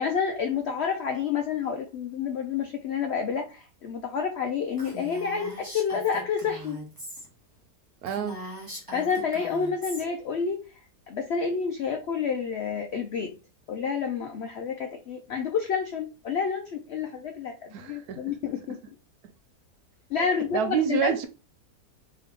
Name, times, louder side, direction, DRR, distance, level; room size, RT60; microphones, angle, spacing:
voice 1, 0.0-6.8 8.9-10.6 11.1-13.4 13.7-18.8 20.1-21.1, left 6 dB, 80° left, 0.5 m, -29 dB
Female speech woman speaking, 4.8-7.3 7.6-7.7 8.0-10.0, equal, 15° right, 1.0 m, -41 dB
voice 2, 8.0-8.4 17.7-18.2 20.2-21.3, right 8 dB, 75° right, 1.1 m, -28 dB
3.3 x 3.2 x 3.6 m
omnidirectional pair, 1.7 m